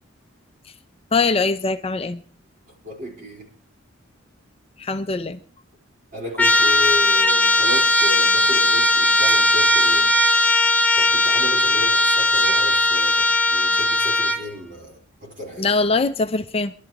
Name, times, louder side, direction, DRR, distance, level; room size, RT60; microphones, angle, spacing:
voice 1, 1.1-2.2 4.8-5.4 9.3-9.4 15.6-16.7, left 3 dB, 30° left, 0.5 m, -22 dB
voice 2, 2.7-3.5 6.1-10.1 11.0-15.7, left 1 dB, 45° right, 4.3 m, -34 dB
Trumpet, 6.4-14.5, left 2 dB, 10° left, 0.9 m, -18 dB
27.0 x 11.5 x 3.0 m
head